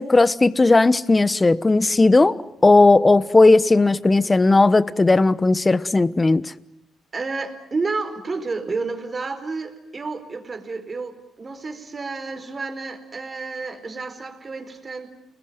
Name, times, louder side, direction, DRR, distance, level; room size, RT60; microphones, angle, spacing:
voice 1, 0.0-6.5, left 3 dB, 20° left, 1.0 m, -16 dB
voice 2, 7.1-15.1, right 3 dB, 30° right, 4.5 m, -30 dB
29.5 x 21.0 x 9.4 m
cardioid pair, 90°, 0 cm